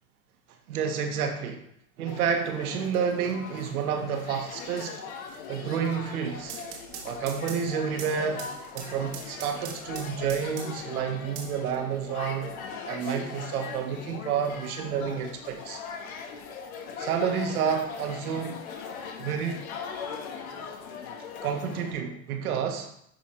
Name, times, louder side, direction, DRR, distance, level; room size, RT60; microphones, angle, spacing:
voice 1, 0.7-1.6 2.0-5.0 5.5-6.6 7.0-8.4 8.7-12.5 12.8-15.8 17.0-18.6 19.2-19.6 21.4-22.9, right 7 dB, 75° right, 4 dB, 1.4 m, -29 dB
sound 1, 2.1-21.9, left 6 dB, 65° left, 1.4 m, -40 dB
sound 2, 6.4-10.9 11.4-12.3, right 7 dB, 60° right, 1.5 m, -42 dB
10.5 x 4.0 x 3.2 m, 0.73 s
hypercardioid pair, 100°, 44 cm